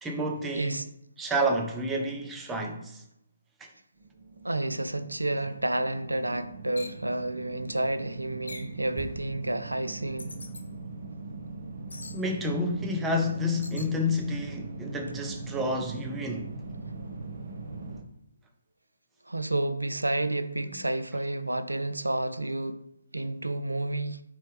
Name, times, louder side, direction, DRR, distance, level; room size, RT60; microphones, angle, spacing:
voice 1, 0.0-0.8 1.2-3.0 12.1-16.5, left 1 dB, 10° right, 0.5 m, -29 dB
voice 2, 0.5-0.9 4.4-10.3 19.3-22.8 23.1-24.2, right 2 dB, 80° right, 0.3 m, -30 dB
sound 1, 4.0-18.0, right 3 dB, 50° right, 0.7 m, -41 dB
sound 2, 6.8-7.0 8.5-8.8 10.2-10.6 11.9-12.2 13.6-13.9, left 2 dB, 65° left, 0.6 m, -43 dB
sound 3, 9.0-12.6 12.9-13.1, right 1 dB, 30° right, 1.1 m, -48 dB
4.1 x 3.1 x 3.4 m
figure-of-eight pair, 140°, 0 cm